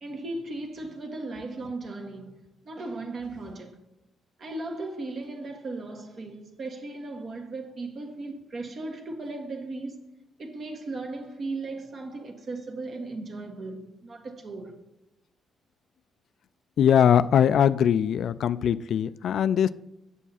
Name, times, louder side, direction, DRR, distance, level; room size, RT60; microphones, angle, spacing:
voice 1, 0.0-2.4 2.7-3.8 4.4-10.0 10.4-14.8, right 2 dB, 50° right, 1.7 m, -36 dB
voice 2, 16.8-19.7, left 9 dB, 65° left, 0.3 m, -21 dB
8.2 x 7.1 x 4.2 m
cardioid pair, 90°, 0 cm